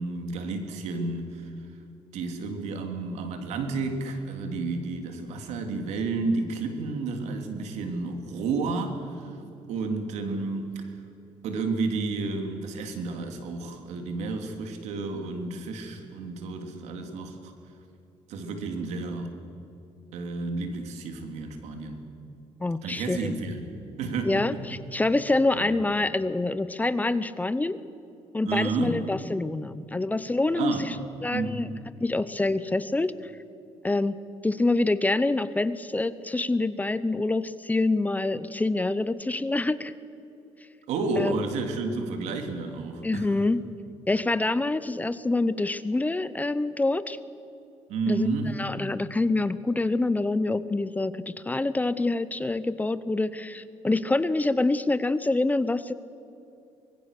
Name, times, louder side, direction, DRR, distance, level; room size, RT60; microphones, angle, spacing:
voice 1, 0.0-1.5 2.1-9.4 9.7-11.0 11.4-17.5 18.3-19.3 20.1-22.0 22.8-23.7 24.0-24.6 25.5-25.7 28.4-29.0 30.5-30.9 31.3-31.6 40.9-43.3 47.9-48.6, right 3 dB, 80° right, 5 dB, 3.2 m, -31 dB
voice 2, 22.6-23.4 24.2-27.8 28.3-30.9 31.2-31.7 32.0-33.3 33.8-39.9 41.2-41.3 43.0-43.6 44.1-47.2 48.1-48.3 48.6-55.9, left 2 dB, 15° left, 15 dB, 0.8 m, -26 dB
24.5 x 21.5 x 6.8 m, 2.7 s
cardioid pair, 100°, 12 cm